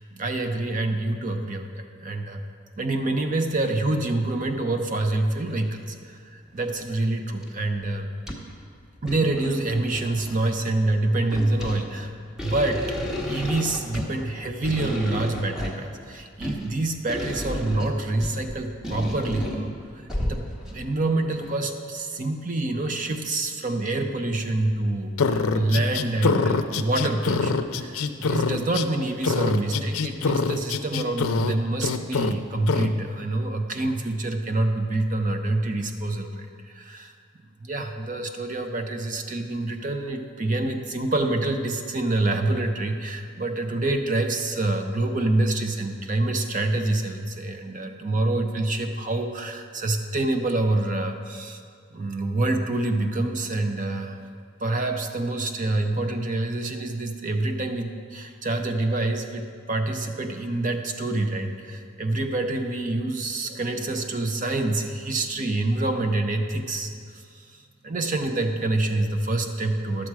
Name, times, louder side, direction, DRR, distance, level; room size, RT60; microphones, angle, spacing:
voice 1, 0.0-2.4 2.8-8.1 9.0-12.1 12.4-12.8 13.2-37.1 37.6-51.6 51.9-54.2 54.6-67.5 67.8-70.1, right 2 dB, 40° right, 6 dB, 0.6 m, -26 dB
sound 1, 3.6-3.7 4.3-4.4 5.5-5.8 6.5-7.0 7.4-7.5 7.8-8.6 9.0-10.5 11.0-20.9 21.4-21.6, equal, 5° right, 0.9 m, -33 dB
sound 2, 25.2-28.9 29.2-31.5 31.8-32.3 32.7-32.9, left 4 dB, 85° left, 0.5 m, -24 dB
11.0 x 7.4 x 4.7 m, 2.1 s
head